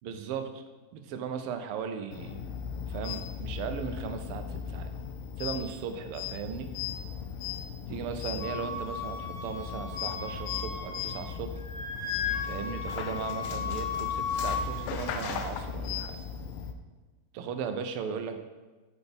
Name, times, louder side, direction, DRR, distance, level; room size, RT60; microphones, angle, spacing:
voice 1, 0.0-0.6 0.9-2.4 2.9-4.9 5.4-6.7 7.9-11.6 12.4-16.2 17.3-18.4, right 6 dB, 85° right, 7 dB, 1.6 m, -37 dB
sound 1, 2.1-16.7, left 7 dB, 75° left, 1.3 m, -37 dB
Wind instrument woodwind instrument, 8.4-11.3 11.6-14.6, left 6 dB, 60° left, 0.6 m, -35 dB
5.7 x 4.1 x 5.2 m, 1.3 s
omnidirectional pair, 2.4 m